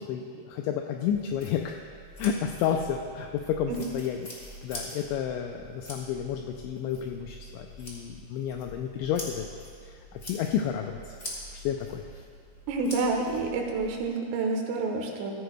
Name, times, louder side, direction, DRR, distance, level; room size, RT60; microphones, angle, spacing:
voice 1, 0.0-1.8 2.2-4.2 4.6-9.5 9.8-11.2 11.5-12.2, left 9 dB, 85° left, 3 dB, 2.6 m, -31 dB
sound 1, 1.1-14.1, equal, 70° left, 0.7 m, -45 dB
voice 2, 12.7-15.3, right 3 dB, 85° right, 2 dB, 3.7 m, -28 dB
16.0 x 15.0 x 2.3 m, 2.2 s
omnidirectional pair, 5.7 m